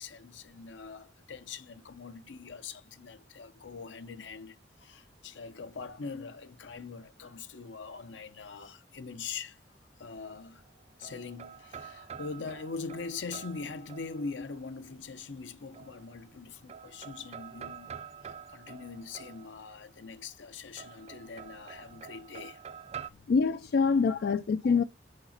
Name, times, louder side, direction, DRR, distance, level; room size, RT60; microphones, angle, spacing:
voice 1, 0.0-9.6 10.0-10.6 11.0-22.6 23.0-23.1 24.1-24.3 24.6-24.8, left 4 dB, 80° left, 0.7 m, -42 dB
sound 1, 10.6-14.6 15.7-16.4 16.7-19.9 20.8-23.1, right 7 dB, 35° right, 0.4 m, -47 dB
voice 2, 23.3-24.8, left 5 dB, 60° left, 0.4 m, -25 dB
6.5 x 5.0 x 5.8 m
head